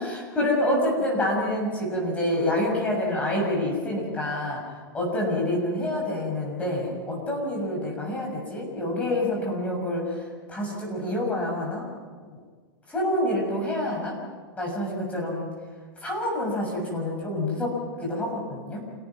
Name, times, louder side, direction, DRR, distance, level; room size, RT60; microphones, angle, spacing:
voice 1, 0.0-4.6 4.9-10.2 10.5-11.9 12.9-14.2 14.6-15.5 16.0-18.8, left 1 dB, 10° left, -1 dB, 6.6 m, -27 dB
29.0 x 18.0 x 5.9 m, 1.5 s
supercardioid pair, 155°, 12 cm